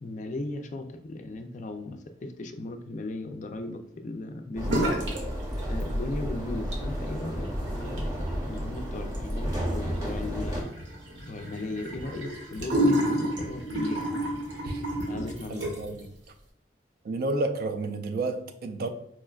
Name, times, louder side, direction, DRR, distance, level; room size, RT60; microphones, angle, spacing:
voice 1, 0.0-4.9 5.7-10.7 11.3-14.1 15.0-15.7, left 2 dB, 45° left, 0.4 m, -37 dB
sound 1, 4.6-10.6, equal, 20° right, 0.8 m, -32 dB
sound 2, 4.6-5.2 5.5-6.2 6.5-16.0, equal, 90° right, 0.9 m, -31 dB
voice 2, 15.5-16.1 17.0-18.9, right 2 dB, 55° right, 0.4 m, -31 dB
4.3 x 2.2 x 2.3 m
head